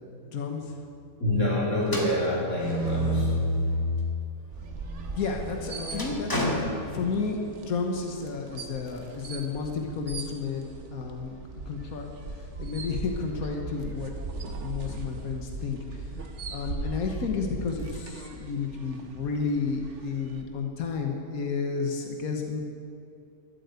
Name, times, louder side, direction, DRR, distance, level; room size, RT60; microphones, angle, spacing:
voice 1, 0.2-0.7 5.2-7.4 7.7-11.4 11.7-14.1 14.4-16.0 16.5-22.6, left 5 dB, 80° left, 2 dB, 1.6 m, -32 dB
voice 2, 1.2-3.4, left 1 dB, 60° left, -6 dB, 4.2 m, -26 dB
sound 1, 1.8-4.3 4.7-7.5, left 1 dB, 15° left, 1.6 m, -30 dB
sound 2, 4.5-20.4, right 3 dB, 55° right, 1.3 m, -39 dB
13.0 x 8.6 x 8.2 m, 2.6 s
omnidirectional pair, 1.5 m